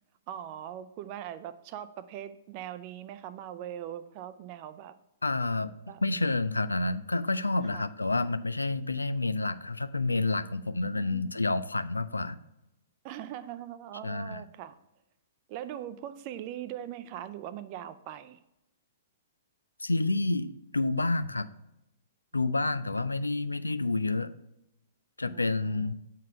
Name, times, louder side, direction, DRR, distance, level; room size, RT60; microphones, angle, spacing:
voice 1, 0.3-4.9 5.9-6.0 7.7-7.9 10.8-11.4 13.0-14.8 15.5-18.4 22.3-22.9 25.2-25.9, right 11 dB, 40° right, 13 dB, 0.5 m, -41 dB
voice 2, 5.2-5.7 6.0-12.4 14.0-14.4 19.8-21.5 22.3-24.3 25.2-25.9, left 2 dB, 85° left, 15 dB, 0.4 m, -29 dB
7.4 x 4.0 x 4.5 m, 0.89 s
figure-of-eight pair, 115°, 0 cm